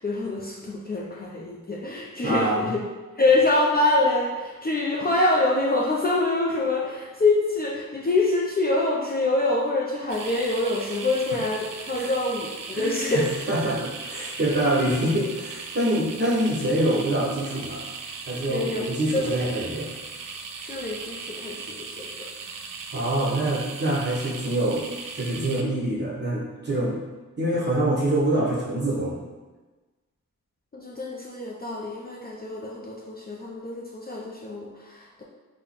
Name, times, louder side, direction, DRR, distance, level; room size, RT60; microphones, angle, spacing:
voice 1, 0.0-2.8 3.2-13.3 18.5-18.8 19.1-19.3 20.6-22.3 30.7-35.2, left 2 dB, 30° left, -3 dB, 0.5 m, -25 dB
voice 2, 2.2-2.7 11.9-12.1 12.7-17.8 18.3-19.9 22.9-24.8 25.1-27.0 27.4-29.2, right 1 dB, 35° right, -5 dB, 1.2 m, -25 dB
sound 1, 10.1-25.6, right 4 dB, 80° right, 0.5 m, -38 dB
3.7 x 2.2 x 4.2 m, 1.2 s
wide cardioid pair, 80°, 32 cm